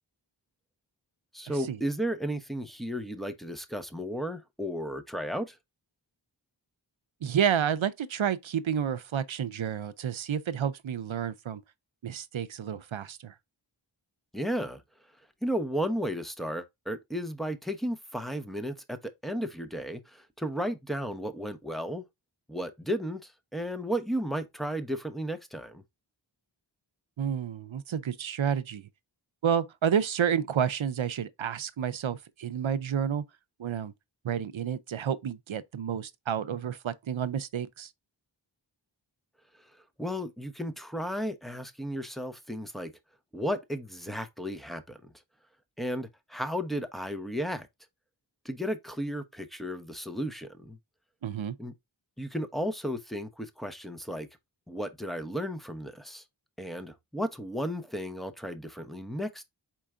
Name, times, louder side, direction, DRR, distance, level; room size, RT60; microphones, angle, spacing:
voice 1, 1.3-5.6 14.3-14.8 15.4-22.0 22.5-25.8 40.0-42.9 43.3-45.1 45.8-47.7 48.4-50.8 51.6-51.7 52.2-54.3 54.7-56.2 56.6-59.4, equal, ahead, 0.8 m, -34 dB
voice 2, 7.2-11.6 12.0-13.3 27.2-28.9 29.4-33.2 33.6-33.9 34.2-37.9 51.2-51.6, right 8 dB, 80° right, 0.6 m, -30 dB
4.6 x 4.5 x 2.4 m
wide cardioid pair, 50°, 46 cm